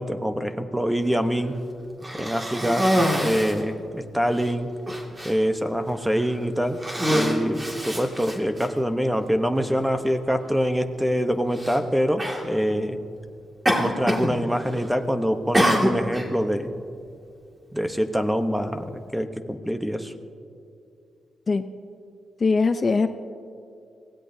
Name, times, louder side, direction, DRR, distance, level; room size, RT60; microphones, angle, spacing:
voice 1, 0.0-1.6 2.1-2.9 3.2-4.7 5.2-6.8 7.1-13.0 13.8-16.7 17.7-20.1, equal, 5° right, 8 dB, 0.9 m, -25 dB
Cough, 2.0-3.6 4.4-4.5 4.9-5.3 6.1-6.3 6.7-8.7 9.6-9.7 11.5-11.8 12.2-12.5 13.7-14.3 14.6-15.0 15.5-16.3, equal, 20° right, 2.1 m, -24 dB
voice 2, 22.4-23.1, left 4 dB, 40° left, 9 dB, 0.6 m, -21 dB
24.5 x 16.5 x 2.7 m, 2.5 s
cardioid pair, 90°, 0 cm